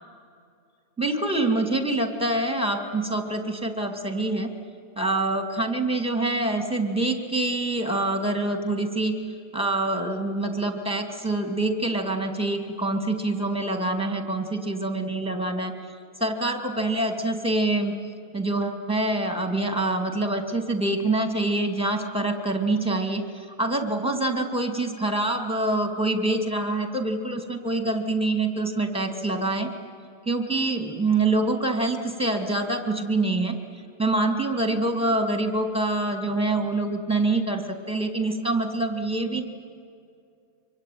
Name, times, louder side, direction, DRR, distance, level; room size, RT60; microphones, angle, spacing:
voice 1, 1.0-4.5 5.0-9.2 9.5-15.7 16.2-17.9 18.3-29.7 30.3-33.5 34.0-39.4, right 2 dB, 5° right, 5 dB, 2.5 m, -25 dB
25.0 x 24.5 x 9.4 m, 2.4 s
omnidirectional pair, 1.3 m